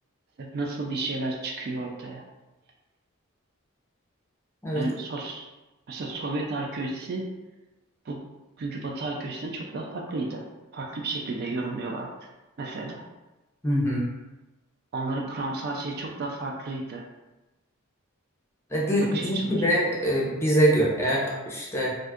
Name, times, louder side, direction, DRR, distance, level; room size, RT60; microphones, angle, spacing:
voice 1, 0.4-2.2 4.7-5.5 5.9-7.3 8.1-8.2 8.6-10.5 10.7-12.3 12.6-13.1 14.9-17.0 19.1-19.7, right 2 dB, 45° right, 1 dB, 0.3 m, -32 dB
voice 2, 13.6-14.1 18.7-21.9, right 1 dB, 10° left, -5 dB, 0.6 m, -24 dB
2.6 x 2.3 x 3.5 m, 1.1 s
head